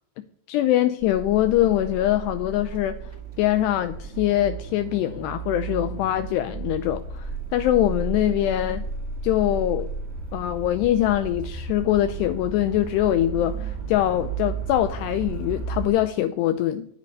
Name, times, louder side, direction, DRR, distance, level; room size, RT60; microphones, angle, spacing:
voice 1, 0.5-3.0 3.4-8.8 9.2-9.9 10.3-16.9, left 13 dB, 85° left, 2.4 m, -23 dB
sound 1, 1.0-15.9, right 4 dB, 40° right, 0.9 m, -34 dB
10.5 x 9.2 x 9.9 m
omnidirectional pair, 5.5 m